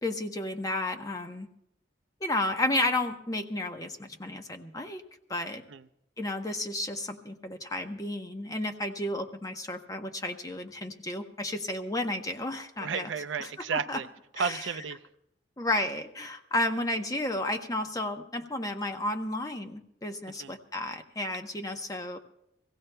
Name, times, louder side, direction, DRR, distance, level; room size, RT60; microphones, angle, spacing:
voice 1, 0.0-1.5 2.2-5.0 5.3-5.6 6.2-13.1 13.7-14.0 14.4-14.6 15.6-22.2, left 1 dB, 20° left, 0.7 m, -32 dB
voice 2, 12.8-14.1 14.3-15.1 20.3-20.6, right 6 dB, 85° right, 0.5 m, -33 dB
23.5 x 16.0 x 2.2 m
head